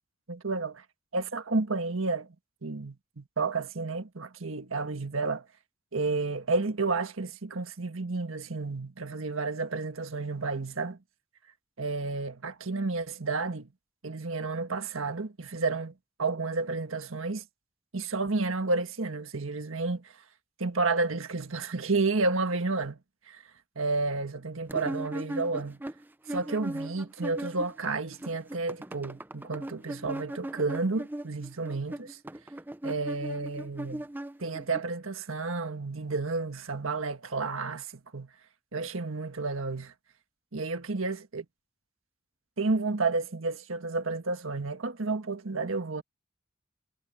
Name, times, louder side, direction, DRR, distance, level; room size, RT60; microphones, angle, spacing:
voice 1, 0.3-0.8 1.1-2.3 2.6-5.5 5.9-11.0 11.8-13.7 14.0-17.4 17.9-20.2 20.6-23.0 23.3-23.4 23.7-25.8 26.3-32.2 32.8-34.1 34.4-38.3 38.7-39.9 40.5-41.4 42.6-46.0, right 3 dB, 85° right, 1.5 m, -31 dB
sound 1, 24.7-27.9 28.1-34.8, right 1 dB, 10° right, 0.4 m, -38 dB
head